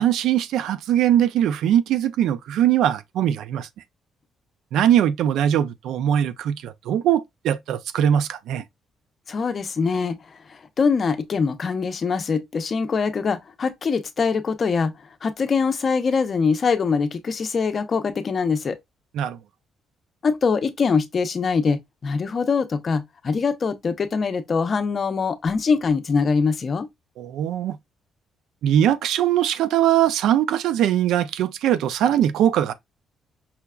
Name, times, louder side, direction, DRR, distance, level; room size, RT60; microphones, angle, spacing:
voice 1, 0.0-3.7 4.7-8.6 19.1-19.4 27.2-27.8 28.6-32.7, right 10 dB, 85° right, 0.3 m, -21 dB
voice 2, 9.3-10.2 10.5-14.9 15.2-18.8 20.2-26.9, left 5 dB, 45° left, 0.6 m, -23 dB
5.6 x 2.2 x 2.2 m
cardioid pair, 90°, 0 cm